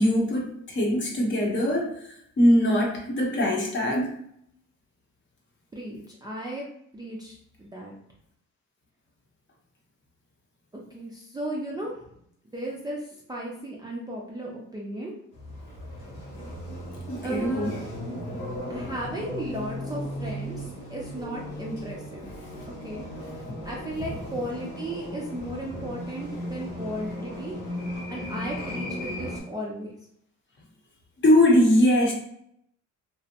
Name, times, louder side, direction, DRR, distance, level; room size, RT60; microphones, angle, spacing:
voice 1, 0.0-2.1 2.4-4.1 17.1-17.7 31.2-32.1, left 1 dB, 40° left, -1 dB, 0.8 m, -21 dB
voice 2, 5.7-6.7 6.9-7.9 10.7-12.0 12.5-15.1 17.2-17.8 18.7-22.3 22.8-23.0 23.6-27.5 28.1-29.9, right 1 dB, 15° right, -4 dB, 0.4 m, -35 dB
sound 1, 15.3-29.4, left 1 dB, 90° left, 1.0 m, -36 dB
2.6 x 2.0 x 2.7 m, 0.70 s
cardioid pair, 110°, 30 cm